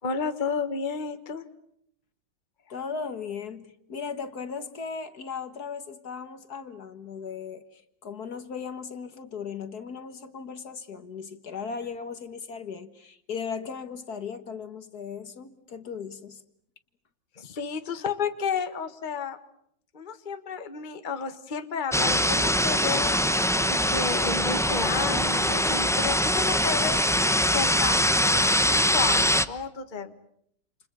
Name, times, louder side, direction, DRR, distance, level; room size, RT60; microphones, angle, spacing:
voice 1, 0.0-1.4 17.4-19.4 19.9-23.2 23.6-27.0 27.5-30.1, left 5 dB, 25° left, 9 dB, 1.6 m, -32 dB
voice 2, 2.7-16.4, left 6 dB, 60° left, 11 dB, 2.0 m, -37 dB
sound 1, 21.9-29.5, equal, 5° left, 0.4 m, -23 dB
29.0 x 29.0 x 6.9 m, 0.72 s
omnidirectional pair, 2.0 m